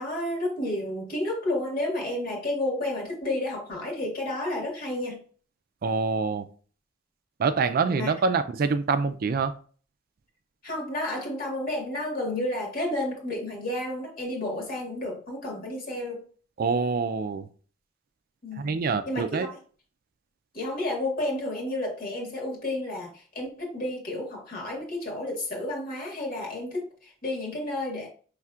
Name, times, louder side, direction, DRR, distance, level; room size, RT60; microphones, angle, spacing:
voice 1, 0.0-5.2 7.8-8.1 10.6-16.3 18.4-18.8 19.1-19.6 20.5-28.1, left 1 dB, 50° left, -1 dB, 1.7 m, -31 dB
voice 2, 5.8-6.4 7.4-9.5 16.6-17.5 18.6-19.5, right 4 dB, 50° right, 10 dB, 0.4 m, -25 dB
5.8 x 3.2 x 2.4 m, 0.42 s
head